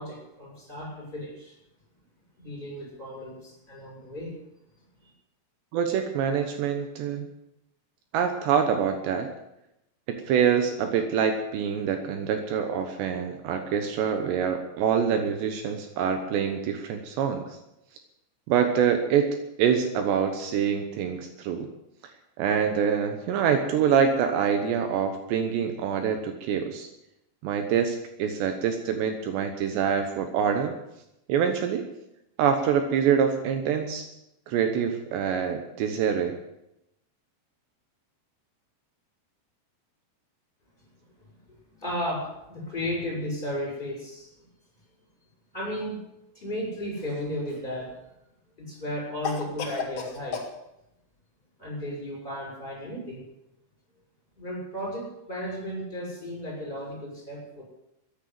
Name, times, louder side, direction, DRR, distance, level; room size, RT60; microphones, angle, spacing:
voice 1, 0.0-1.6 2.4-4.3 5.0-5.1 41.2-41.3 41.7-44.3 45.5-45.9 46.3-47.9 48.6-50.4 51.6-53.2 54.4-57.6, equal, 10° left, -2 dB, 6.7 m, -34 dB
voice 2, 5.7-7.3 8.1-9.3 10.1-17.6 18.5-21.7 22.4-26.9 27.4-30.7 31.3-31.9 32.4-34.1 34.5-36.4, right 7 dB, 75° right, 6 dB, 3.2 m, -25 dB
Cough, 46.9-47.7 49.2-50.5, left 5 dB, 50° left, 2.0 m, -34 dB
14.0 x 10.5 x 9.5 m, 0.86 s
omnidirectional pair, 5.3 m